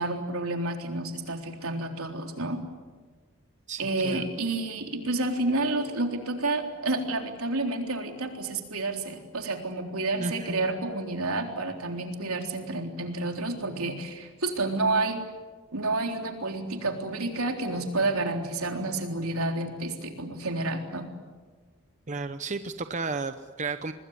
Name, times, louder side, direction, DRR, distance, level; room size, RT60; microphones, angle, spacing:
voice 1, 0.0-2.6 3.8-15.2 15.7-21.1, right 2 dB, 80° right, 4 dB, 3.7 m, -30 dB
voice 2, 3.7-4.2 10.2-10.6 22.1-23.9, right 3 dB, 35° right, 10 dB, 0.8 m, -33 dB
25.5 x 21.0 x 9.7 m, 1.4 s
head